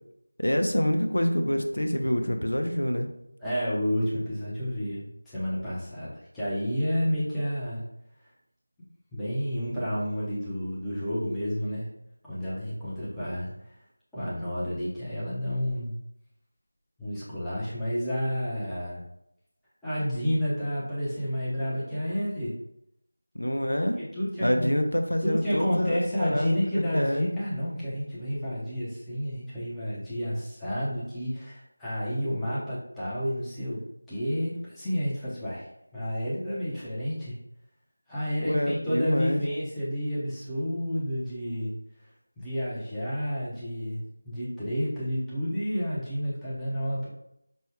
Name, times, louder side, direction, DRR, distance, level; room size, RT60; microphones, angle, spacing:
voice 1, 0.4-3.1 23.3-24.0 24.4-27.3 38.4-39.4, equal, 85° left, 5 dB, 0.5 m, -26 dB
voice 2, 3.4-7.8 8.2-8.3 9.1-11.9 12.2-13.8 14.1-16.0 17.0-19.0 19.8-22.5 24.0-24.7 25.2-33.8 34.1-35.7 35.9-37.3 38.1-41.7 42.0-42.1 42.4-47.1, equal, 5° left, -13 dB, 0.7 m, -30 dB
5.3 x 2.3 x 3.0 m, 0.80 s
figure-of-eight pair, 170°, 0 cm